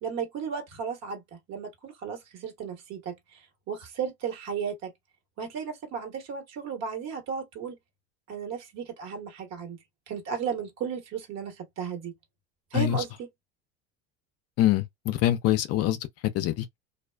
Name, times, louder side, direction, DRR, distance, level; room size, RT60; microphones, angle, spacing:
voice 1, 0.0-4.9 5.4-7.8 8.3-9.8 10.1-12.1 12.7-13.3, right 7 dB, 55° right, 1.3 m, -35 dB
voice 2, 12.7-13.0 14.6-16.0 16.3-16.7, left 13 dB, 50° left, 0.5 m, -24 dB
2.4 x 2.3 x 2.2 m
supercardioid pair, 95°, 33 cm